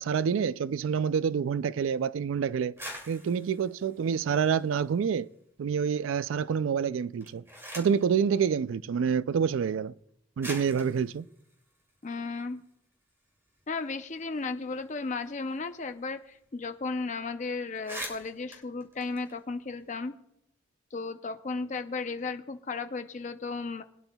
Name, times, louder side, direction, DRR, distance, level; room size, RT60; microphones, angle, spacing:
voice 1, 0.0-2.7 3.1-5.3 5.6-7.4 7.8-9.9 10.4-11.3, right 7 dB, 85° right, 0.3 m, -27 dB
sound 1, 2.6-5.2 5.6-6.2 7.0-8.1 9.2-9.3 10.0-10.1 10.4-12.7 13.1-13.2 13.4-16.1 16.3-16.4 16.7-17.0 17.3-17.4 17.7-19.9, equal, 15° right, 2.4 m, -45 dB
voice 2, 12.0-12.6 13.7-20.1 20.9-23.8, left 4 dB, 40° left, 0.5 m, -35 dB
22.0 x 9.8 x 2.3 m
head